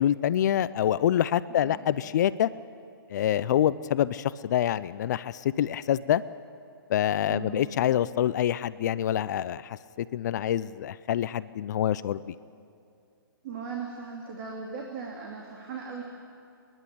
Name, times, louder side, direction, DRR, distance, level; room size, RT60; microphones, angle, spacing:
voice 1, 0.0-2.5 3.1-6.2 6.9-12.3, left 11 dB, 50° left, 16 dB, 0.6 m, -26 dB
voice 2, 1.5-1.9 7.3-7.6 13.4-16.0, right 5 dB, 45° right, -1 dB, 2.9 m, -38 dB
27.0 x 11.0 x 9.9 m, 2.5 s
hypercardioid pair, 135°, 12 cm